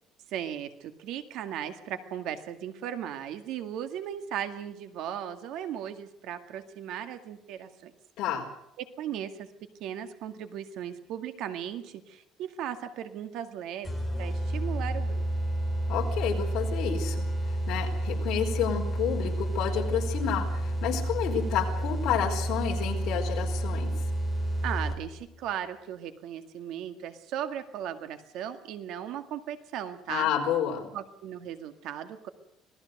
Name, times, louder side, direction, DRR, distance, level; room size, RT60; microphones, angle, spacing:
voice 1, 0.3-7.9 8.8-9.5 9.8-15.2 24.6-30.3 30.9-32.3, right 10 dB, 60° right, 9 dB, 1.9 m, -37 dB
sound 1, 13.8-25.2, right 1 dB, ahead, 4.1 m, -30 dB
voice 2, 15.9-23.9 30.1-30.9, left 8 dB, 60° left, 2 dB, 4.6 m, -30 dB
26.5 x 18.5 x 6.7 m, 0.79 s
cardioid pair, 165°, 0 cm